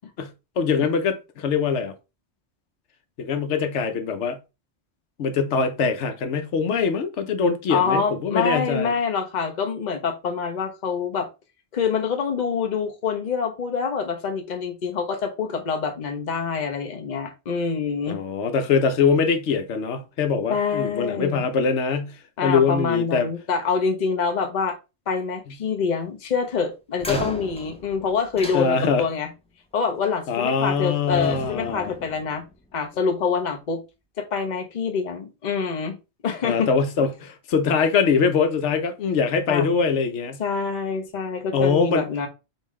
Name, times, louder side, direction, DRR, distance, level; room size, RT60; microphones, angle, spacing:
voice 1, 0.2-1.9 3.2-4.4 5.2-8.9 18.1-22.2 22.4-23.3 27.1-27.2 28.5-29.0 30.3-31.9 36.4-40.4 41.5-42.0, left 5 dB, 90° left, 1.0 m, -23 dB
voice 2, 7.7-11.3 11.7-18.2 20.5-21.4 22.4-24.8 25.1-29.3 29.7-32.4 32.7-33.8 34.2-36.0 36.2-36.7 39.5-39.7 40.4-42.3, left 5 dB, 45° left, 0.8 m, -26 dB
sound 1, 27.0-29.3 30.4-30.8 31.1-32.8, left 1 dB, 5° left, 0.5 m, -37 dB
5.4 x 2.7 x 3.1 m
omnidirectional pair, 1.2 m